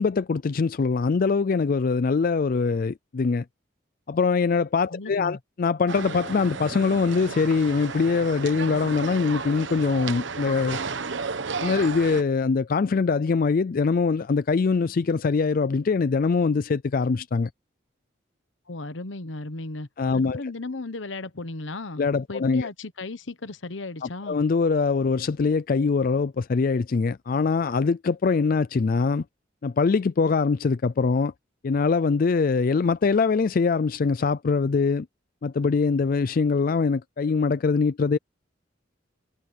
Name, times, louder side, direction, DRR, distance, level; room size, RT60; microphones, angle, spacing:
voice 1, 0.0-3.4 4.1-10.8 11.6-17.5 20.0-20.4 22.0-22.7 24.0-29.2 29.6-31.3 31.6-35.1 35.4-38.2, left 4 dB, 45° left, 0.4 m, -23 dB
voice 2, 4.9-5.4 18.7-24.4, left 2 dB, 75° left, 1.1 m, -35 dB
sound 1, 5.9-12.2, right 4 dB, 70° right, 1.0 m, -33 dB
head